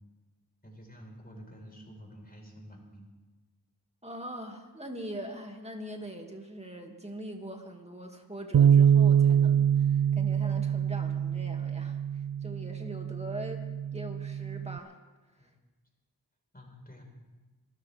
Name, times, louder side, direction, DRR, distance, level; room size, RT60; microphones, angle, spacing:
voice 1, 0.6-3.1 15.4-15.5 16.5-17.0, equal, 25° left, 0 dB, 5.0 m, -49 dB
voice 2, 4.0-13.6 13.9-15.0 15.4-15.5, right 1 dB, 15° right, 2 dB, 2.5 m, -42 dB
Bass guitar, 8.5-14.8, right 8 dB, 55° right, 0.4 m, -25 dB
26.0 x 14.0 x 3.6 m, 1.2 s
wide cardioid pair, 50°, 38 cm